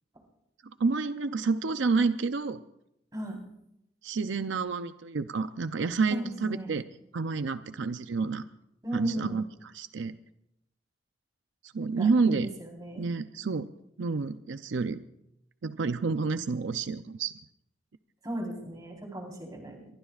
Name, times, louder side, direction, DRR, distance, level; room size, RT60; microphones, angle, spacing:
voice 1, 0.8-2.6 4.0-6.8 7.1-8.4 8.9-9.4 9.7-10.2 11.6-12.5 13.0-13.7 14.0-15.0 15.6-17.3, right 4 dB, 80° right, 10 dB, 0.6 m, -29 dB
voice 2, 6.1-6.7 8.8-9.4 12.0-13.1 18.2-19.9, right 1 dB, 20° right, 0 dB, 4.1 m, -37 dB
24.5 x 23.5 x 2.5 m, 0.80 s
head